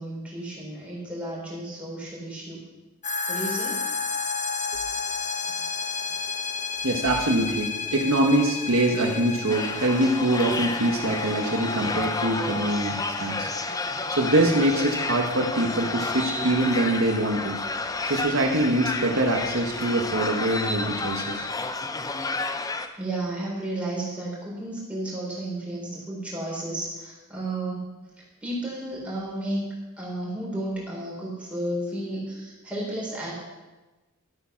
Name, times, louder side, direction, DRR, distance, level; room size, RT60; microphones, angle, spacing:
voice 1, 0.0-2.6 3.3-3.9 5.6-5.7 23.0-27.8 28.4-29.7 30.0-33.3, right 1 dB, 5° right, -5 dB, 4.1 m, -32 dB
sound 1, 3.0-19.8, left 4 dB, 35° left, 1.1 m, -34 dB
voice 2, 6.8-17.6 18.1-21.4, right 1 dB, 65° right, 1 dB, 1.4 m, -24 dB
sound 2, 9.5-22.9, left 3 dB, 15° left, 0.5 m, -31 dB
12.5 x 8.8 x 5.9 m, 1.1 s
head